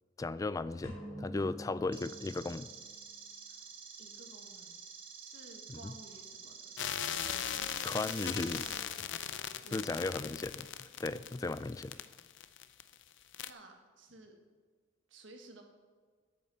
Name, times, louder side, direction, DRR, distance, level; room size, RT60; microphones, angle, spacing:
voice 1, 0.2-2.7 5.7-5.9 7.8-9.1 9.7-12.0, left 3 dB, 20° left, 16 dB, 0.3 m, -36 dB
sound 1, 0.8-2.9, equal, 50° left, 3.4 m, -47 dB
sound 2, 1.9-8.8, right 6 dB, 30° right, 1.5 m, -50 dB
voice 2, 4.0-4.8 5.2-6.8 9.6-10.3 13.4-14.4 15.1-15.6, right 2 dB, 80° right, 3 dB, 1.6 m, -55 dB
sound 3, 6.8-13.0 13.3-13.5, left 9 dB, 75° left, 0.5 m, -38 dB
8.9 x 8.5 x 6.9 m, 1.5 s
head